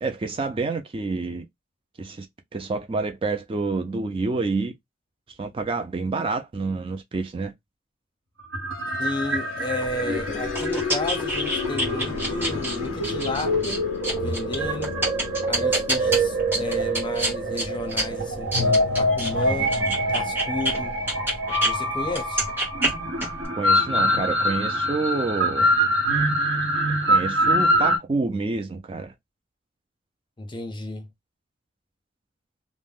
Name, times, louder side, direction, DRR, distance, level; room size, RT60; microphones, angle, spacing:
voice 1, 0.0-1.5 2.0-2.3 2.5-4.7 5.4-7.5 23.6-25.7 27.0-29.1, right 3 dB, 25° right, 0.4 m, -28 dB
sound 1, 8.4-28.0, equal, 60° right, 0.9 m, -25 dB
sound 2, 8.7-21.2, left 8 dB, 85° left, 0.3 m, -36 dB
voice 2, 9.0-13.9 14.1-14.9 15.5-19.8 20.1-21.0 21.6-22.5 30.4-31.1, left 2 dB, 25° left, 0.6 m, -32 dB
sound 3, 9.8-21.7 22.1-23.5, right 1 dB, 10° right, 1.0 m, -29 dB
2.6 x 2.0 x 3.4 m
head